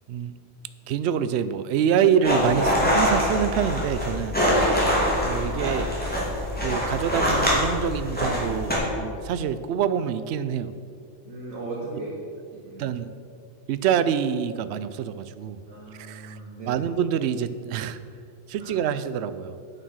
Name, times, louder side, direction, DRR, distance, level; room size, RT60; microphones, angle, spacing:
voice 1, 0.9-4.4 5.2-6.0 6.6-10.7 12.8-13.1 13.7-15.6 16.0-16.4 16.7-18.0 18.5-19.6, right 8 dB, 65° right, 13 dB, 0.7 m, -26 dB
sound 1, 2.2-8.8, equal, 5° left, 2.6 m, -24 dB
voice 2, 4.7-5.1 11.2-12.2 12.5-13.0 15.7-16.8 18.6-18.7, right 2 dB, 90° right, -5 dB, 2.0 m, -37 dB
9.1 x 7.3 x 6.4 m, 2.3 s
omnidirectional pair, 1.4 m